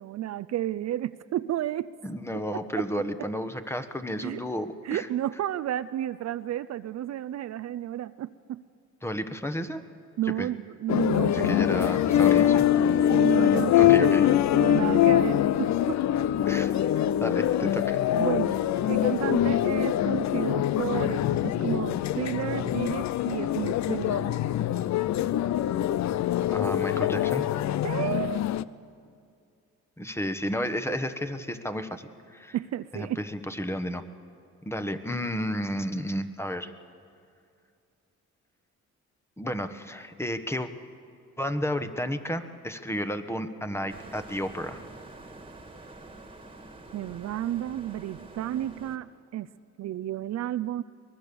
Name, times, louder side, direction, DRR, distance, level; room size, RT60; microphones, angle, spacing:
voice 1, 0.0-1.9 2.5-2.9 4.2-4.4 4.8-8.6 10.2-11.9 12.9-16.1 16.8-16.9 18.2-18.6 18.9-24.4 27.8-28.5 32.5-33.2 46.9-49.5 49.8-50.8, right 12 dB, 60° right, 13 dB, 0.5 m, -32 dB
voice 2, 2.0-5.1 9.0-9.8 10.4-10.5 11.3-12.6 13.8-14.2 16.5-16.7 17.2-18.2 26.5-27.5 30.0-32.5 32.9-34.0 34.6-36.7 39.4-40.7 41.4-44.8, equal, 10° left, 9 dB, 1.2 m, -32 dB
sound 1, 10.9-28.6, left 11 dB, 65° left, 0.6 m, -24 dB
sound 2, 43.9-49.0, right 2 dB, 15° right, 1.9 m, -47 dB
23.5 x 19.5 x 7.0 m, 2.4 s
cardioid pair, 90°, 30 cm